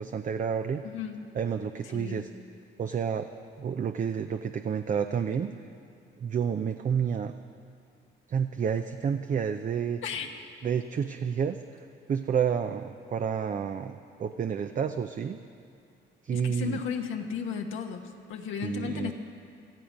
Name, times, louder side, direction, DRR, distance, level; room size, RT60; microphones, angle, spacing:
voice 1, 0.0-0.8 1.3-2.3 2.8-3.3 3.6-5.5 6.2-7.3 8.3-10.0 10.6-11.6 12.1-15.4 16.2-16.8 18.6-19.1, right 7 dB, 40° right, 8 dB, 0.5 m, -29 dB
voice 2, 0.8-1.2 1.9-2.3 10.0-10.3 16.3-19.1, left 7 dB, 80° left, 3 dB, 1.1 m, -35 dB
18.0 x 13.0 x 5.3 m, 2.4 s
cardioid pair, 90°, 20 cm